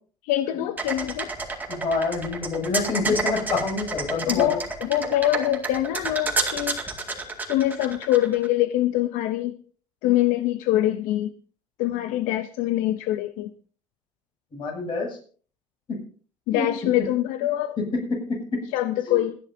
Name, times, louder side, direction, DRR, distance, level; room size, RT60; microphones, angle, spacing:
voice 1, 0.2-1.3 4.3-6.8 7.5-9.6 10.0-11.3 11.8-13.5 16.5-17.8 18.7-19.4, left 14 dB, 85° left, 11 dB, 0.7 m, -24 dB
sound 1, 0.8-8.5, right 3 dB, 15° right, 2.1 m, -29 dB
voice 2, 1.7-4.5 14.5-15.2 15.9-16.0 16.5-16.7 18.1-18.6 19.1-19.2, left 3 dB, 40° left, 0 dB, 7.1 m, -27 dB
28.0 x 10.5 x 2.7 m, 0.43 s
cardioid pair, 150°, 13 cm